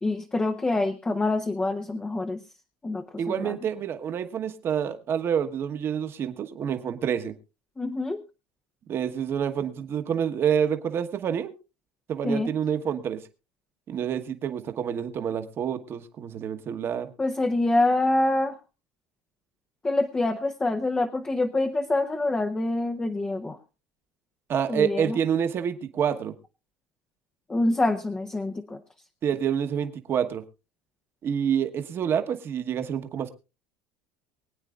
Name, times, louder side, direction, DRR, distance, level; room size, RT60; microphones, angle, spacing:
voice 1, 0.0-2.4 2.8-3.6 7.8-8.2 12.2-12.5 17.2-18.6 19.8-23.6 24.7-25.2 27.5-28.8, left 2 dB, 10° left, 6 dB, 0.7 m, -26 dB
voice 2, 3.2-7.3 8.9-11.5 12.1-13.2 13.9-17.1 24.5-26.3 29.2-30.4 31.2-33.3, right 8 dB, 35° right, 8 dB, 1.1 m, -27 dB
24.0 x 9.0 x 2.4 m, 0.28 s
cardioid pair, 140°, 7 cm